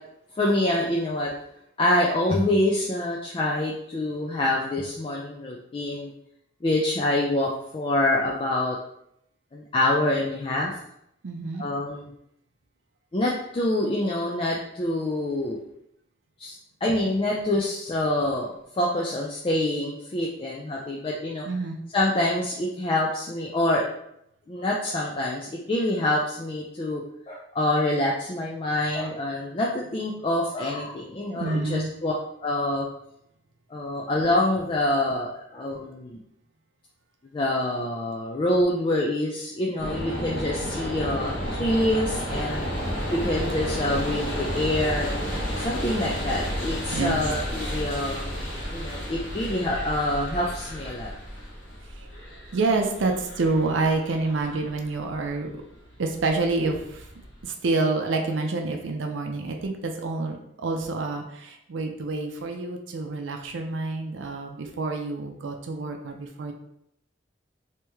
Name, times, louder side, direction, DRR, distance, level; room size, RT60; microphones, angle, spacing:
voice 1, 0.4-1.3 1.8-6.1 6.6-8.8 9.5-10.7 11.6-12.1 13.1-15.6 16.4-16.5 16.8-21.4 21.9-23.9 24.5-32.1 32.4-32.9 33.7-36.2 37.3-42.6 43.1-45.1 45.6-48.4 48.7-51.1, left 1 dB, 30° left, -2 dB, 0.4 m, -26 dB
voice 2, 11.2-11.7 21.5-21.8 31.4-31.9 46.9-47.2 51.9-52.1 52.5-55.6 56.0-57.1 57.4-66.5, right 3 dB, 90° right, 3 dB, 0.5 m, -28 dB
sound 1, 39.8-57.4, equal, 70° left, 1.1 m, -32 dB
3.1 x 2.8 x 3.4 m, 0.76 s
head